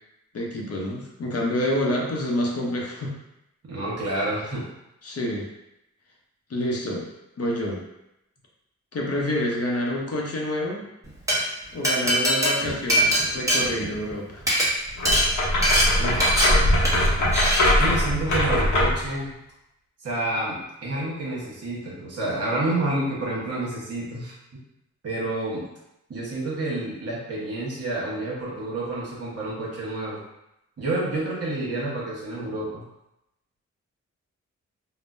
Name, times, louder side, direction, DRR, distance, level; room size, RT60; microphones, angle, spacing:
voice 1, 0.3-3.2 5.0-5.5 6.5-7.1 7.4-7.9 8.9-10.9 11.7-14.4, left 1 dB, 55° left, -1 dB, 0.7 m, -27 dB
voice 2, 3.7-4.6 16.0-16.6 17.6-19.3 20.0-24.6 25.0-25.7 26.1-30.2 30.8-32.8, right 2 dB, 55° right, -6 dB, 1.2 m, -29 dB
Glass, 11.1-11.4 11.8-14.1 14.4-14.7 15.1-15.2 15.6-15.8 16.2-16.5 16.8-17.1 17.3-17.6, equal, 10° right, 1.0 m, -21 dB
sound 1, 15.0-19.1, left 1 dB, 90° left, 0.8 m, -21 dB
3.5 x 2.0 x 2.5 m, 0.88 s
cardioid pair, 85°, 30 cm